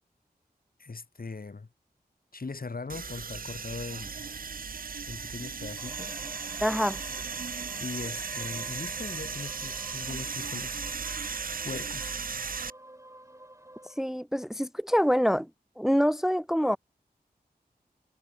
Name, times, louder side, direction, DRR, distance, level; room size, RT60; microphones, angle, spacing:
voice 1, 0.8-1.7 2.3-4.3 5.0-6.2 7.8-10.9 11.6-12.2, left 4 dB, 60° left, 3.2 m, -40 dB
sound 1, 2.9-12.7, right 5 dB, 60° right, 0.6 m, -36 dB
sound 2, 5.8-14.0, right 1 dB, 20° right, 2.6 m, -50 dB
voice 2, 6.6-7.0 14.0-15.5 15.8-16.8, equal, 5° right, 0.7 m, -25 dB
wide cardioid pair, 55°, 17 cm